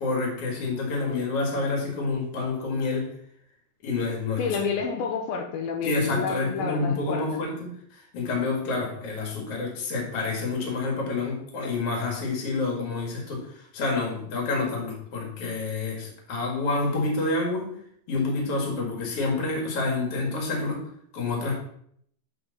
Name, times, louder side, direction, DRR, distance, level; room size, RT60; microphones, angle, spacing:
voice 1, 0.0-3.1 3.8-4.6 5.8-17.7 18.1-20.9 21.1-21.5, left 3 dB, 45° left, 0 dB, 2.4 m, -28 dB
voice 2, 4.4-7.4, left 5 dB, 80° left, 1 dB, 2.5 m, -29 dB
7.8 x 4.6 x 4.0 m, 0.67 s
omnidirectional pair, 4.2 m